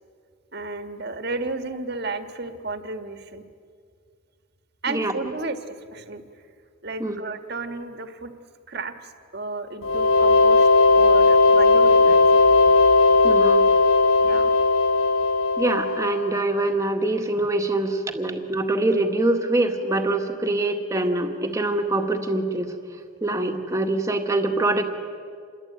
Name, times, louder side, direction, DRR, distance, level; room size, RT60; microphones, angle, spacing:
voice 1, 0.5-3.4 4.8-6.2 6.8-8.3 8.7-10.7 10.9-12.4 14.2-14.5, right 3 dB, 50° right, 7 dB, 1.7 m, -33 dB
sound 1, 9.8-16.4, left 3 dB, 80° left, 1.0 m, -17 dB
voice 2, 13.2-13.7 15.6-22.7 23.2-24.8, right 2 dB, 15° right, 4 dB, 1.8 m, -24 dB
27.5 x 22.0 x 9.1 m, 2.2 s
head